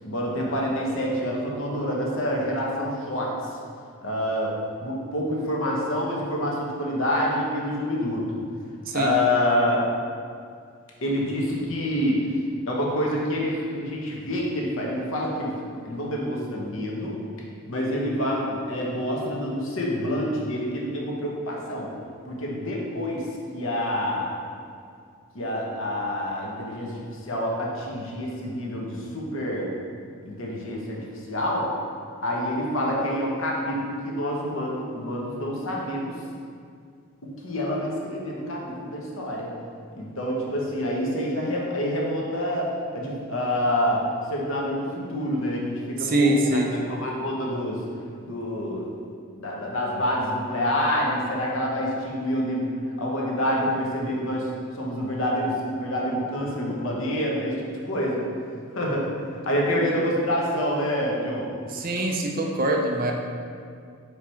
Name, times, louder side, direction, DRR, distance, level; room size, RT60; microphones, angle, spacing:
voice 1, 0.0-3.3 4.0-4.5 4.8-8.4 8.9-9.8 11.0-12.2 12.7-17.2 17.7-21.9 22.3-24.4 25.3-29.7 30.2-31.0 31.3-31.7 32.2-36.1 37.4-39.5 40.0-44.0 44.3-47.8 48.2-48.9 49.4-52.7 53.0-54.5 54.7-58.2 58.7-61.5, equal, 60° left, -3 dB, 1.1 m, -27 dB
voice 2, 46.0-46.7 61.7-63.1, right 1 dB, 40° right, 2 dB, 0.5 m, -23 dB
4.8 x 4.8 x 4.4 m, 2.3 s
head